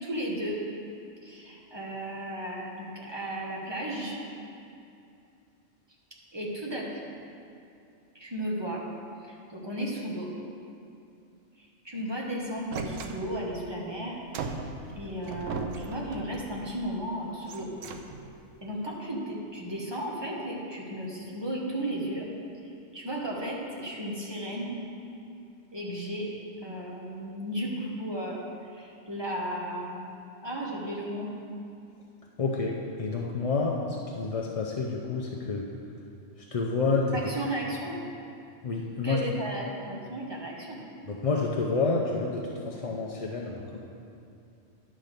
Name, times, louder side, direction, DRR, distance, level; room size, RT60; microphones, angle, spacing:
voice 1, 0.0-0.6 1.2-4.2 6.3-7.0 8.1-8.9 9.2-10.3 11.6-14.5 14.9-17.7 18.6-22.3 22.9-24.8 25.7-26.3 26.6-28.4 28.7-30.1 30.4-31.3 37.1-38.0 39.0-40.8, right 1 dB, 20° right, -3 dB, 1.2 m, -34 dB
sound 1, 12.7-13.6 14.3-16.7 17.4-18.5, right 4 dB, 90° right, 1.0 m, -38 dB
voice 2, 32.4-35.7 36.5-37.3 38.6-39.2 41.1-43.8, left 3 dB, 45° left, -1 dB, 0.4 m, -29 dB
10.5 x 3.8 x 6.6 m, 2.6 s
omnidirectional pair, 1.3 m